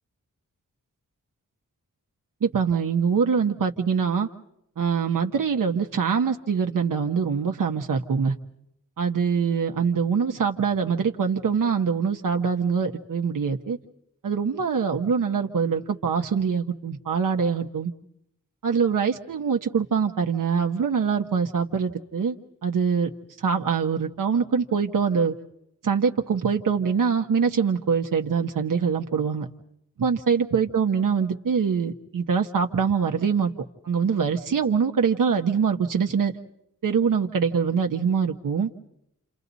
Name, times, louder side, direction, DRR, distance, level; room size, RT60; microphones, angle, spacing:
voice 1, 2.4-4.3 4.8-8.3 9.0-13.8 14.2-17.9 18.6-22.4 22.6-23.1 23.4-25.3 25.8-29.5 30.0-33.5 33.8-36.3 36.8-38.7, right 6 dB, 85° right, 4 dB, 1.3 m, -24 dB
29.5 x 28.0 x 4.1 m, 0.77 s
wide cardioid pair, 85°, 32 cm